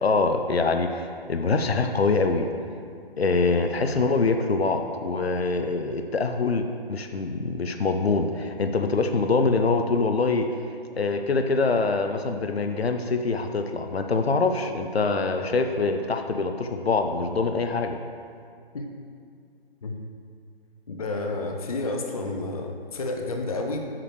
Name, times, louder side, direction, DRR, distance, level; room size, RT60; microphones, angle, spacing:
voice 1, 0.0-2.5 3.2-10.5 10.9-18.0, left 3 dB, 85° left, 6 dB, 0.5 m, -24 dB
voice 2, 20.9-23.8, left 2 dB, 40° left, 3 dB, 0.5 m, -30 dB
7.6 x 6.2 x 3.2 m, 2.2 s
figure-of-eight pair, 140°, 30 cm